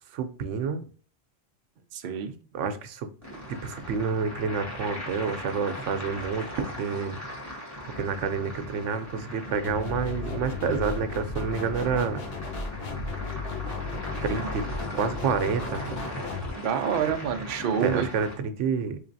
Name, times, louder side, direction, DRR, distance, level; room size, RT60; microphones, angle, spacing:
voice 1, 0.1-0.9 2.5-3.1 3.3-7.2 8.0-12.2 14.2-14.6 14.9-16.0 17.8-19.0, right 5 dB, 80° right, 9 dB, 0.9 m, -29 dB
voice 2, 1.9-2.4 14.3-14.5 16.6-18.1, right 8 dB, 60° right, 6 dB, 0.5 m, -28 dB
sound 1, 3.2-18.3, equal, 15° left, 1.2 m, -39 dB
sound 2, 9.6-16.5, left 4 dB, 60° left, 1.0 m, -35 dB
3.8 x 3.2 x 2.6 m, 0.42 s
omnidirectional pair, 1.2 m